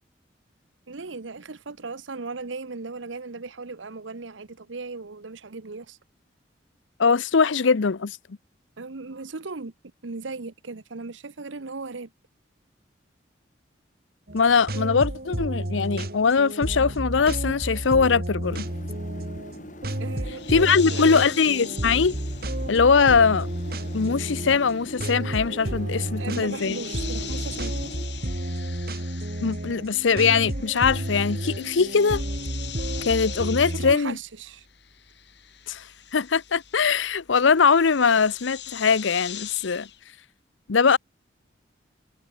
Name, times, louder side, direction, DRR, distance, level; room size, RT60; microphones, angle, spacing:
voice 1, 0.9-6.0 8.8-9.7 10.0-12.1 20.0-21.4 26.2-27.7 33.7-34.7, right 3 dB, 90° right, 1.0 m, -37 dB
voice 2, 7.0-8.2 14.3-18.7 20.5-22.1 22.7-23.5 23.9-26.8 29.4-32.2 33.0-34.2 35.7-35.8 36.1-39.9 40.7-41.0, left 5 dB, 90° left, 0.7 m, -21 dB
sound 1, 14.3-33.9, right 1 dB, 55° right, 2.3 m, -31 dB
sound 2, 18.4-28.0, left 1 dB, 40° left, 3.8 m, -42 dB
sound 3, 20.3-30.0 30.3-40.0, left 12 dB, 65° left, 5.5 m, -42 dB
head